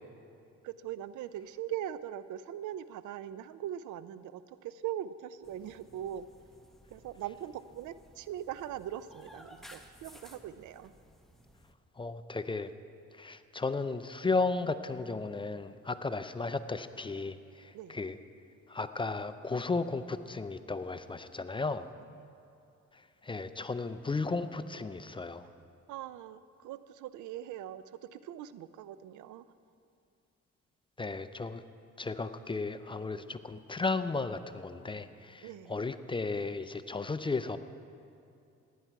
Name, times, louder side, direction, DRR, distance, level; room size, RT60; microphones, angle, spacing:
voice 1, 0.6-6.2 6.9-10.9 17.7-18.0 25.9-29.5 35.4-35.7, right 11 dB, 80° right, 15 dB, 0.5 m, -41 dB
sound 1, 5.4-11.7, equal, ahead, 0.9 m, -56 dB
voice 2, 12.0-12.7 13.1-18.1 18.7-21.9 23.2-25.5 31.0-31.6 32.0-37.6, left 3 dB, 15° left, 11 dB, 0.5 m, -34 dB
16.0 x 10.0 x 4.6 m, 2.6 s
cardioid pair, 90°, 30 cm